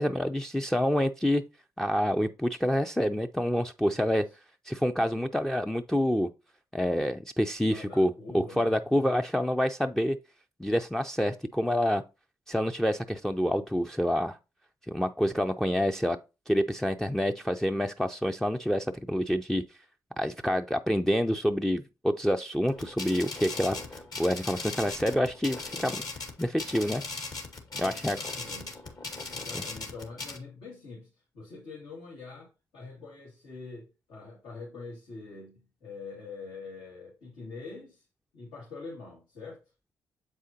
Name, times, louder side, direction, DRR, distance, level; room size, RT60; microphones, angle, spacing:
voice 1, 0.0-1.4 1.8-4.3 4.7-6.3 6.7-10.2 10.6-12.0 12.5-14.4 14.9-16.2 16.5-19.6 20.2-26.0 26.4-27.0 27.8-28.2, equal, 5° left, 0.4 m, -27 dB
voice 2, 3.9-4.4 7.6-9.1 27.8-28.8 29.3-38.0 38.3-39.6, left 4 dB, 80° left, 2.3 m, -45 dB
sound 1, 22.7-30.4, left 3 dB, 55° left, 1.9 m, -38 dB
7.5 x 4.8 x 2.8 m
supercardioid pair, 50°, 8 cm